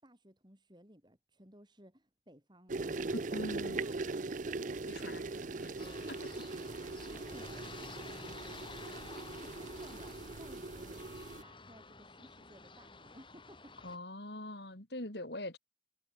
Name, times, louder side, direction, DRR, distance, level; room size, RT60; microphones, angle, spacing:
voice 1, 0.0-3.5 3.8-6.2 6.5-8.7 9.4-11.1 11.4-13.8, equal, 25° right, 6.4 m, -58 dB
sound 1, 2.7-11.4, right 3 dB, 40° right, 0.6 m, -40 dB
voice 2, 3.3-3.8 4.9-5.3 5.6-5.7 13.8-15.6, left 1 dB, 60° left, 4.3 m, -42 dB
sound 2, 5.8-14.0, left 3 dB, 25° left, 4.4 m, -51 dB
head